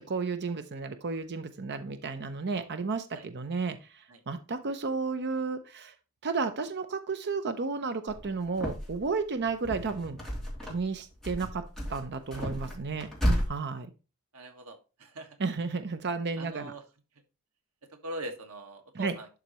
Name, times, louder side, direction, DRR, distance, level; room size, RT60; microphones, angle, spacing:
voice 1, 0.0-5.9 6.2-10.2 10.6-11.6 11.9-13.1 13.5-13.9 15.4-16.7 18.9-19.2, right 4 dB, 50° right, 9 dB, 0.7 m, -32 dB
sound 1, 8.1-9.1 9.5-10.9 11.2-13.5, equal, ahead, 2.6 m, -32 dB
voice 2, 14.3-15.4 16.4-16.8 18.0-19.3, right 1 dB, 85° right, 5 dB, 1.5 m, -41 dB
11.5 x 3.9 x 3.0 m, 0.31 s
head